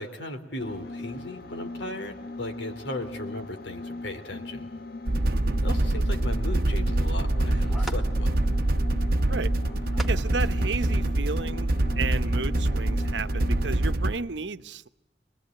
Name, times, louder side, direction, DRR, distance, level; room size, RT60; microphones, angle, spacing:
voice 1, 0.0-4.7 5.6-8.4, left 1 dB, 85° left, 6 dB, 3.5 m, -36 dB
sound 1, 0.6-14.1, left 2 dB, 60° left, 1.4 m, -39 dB
sound 2, 5.1-14.2, right 1 dB, 55° right, 0.9 m, -25 dB
voice 2, 5.3-5.6 9.3-9.5 10.1-11.7 12.0-14.9, right 4 dB, 85° right, 12 dB, 1.0 m, -33 dB
sound 3, 7.4-8.3 9.6-10.9 11.6-11.7 12.2-12.3, right 1 dB, ahead, 1.8 m, -41 dB
24.5 x 21.0 x 9.3 m, 0.87 s
head